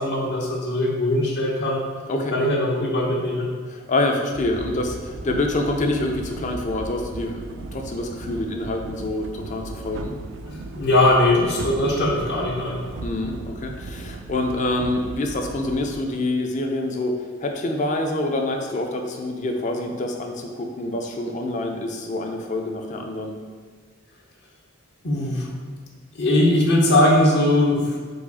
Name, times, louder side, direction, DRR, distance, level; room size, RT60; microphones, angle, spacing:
voice 1, 0.0-1.8 2.3-3.5 10.5-12.8 25.0-25.5 26.2-28.0, left 1 dB, 55° left, -1 dB, 0.7 m, -20 dB
voice 2, 3.7-10.2 13.0-17.1 17.4-23.3, left 2 dB, 35° left, 3 dB, 0.4 m, -26 dB
sound 1, 4.3-16.0, right 3 dB, 60° right, 0.3 m, -37 dB
4.7 x 2.4 x 4.1 m, 1.5 s
head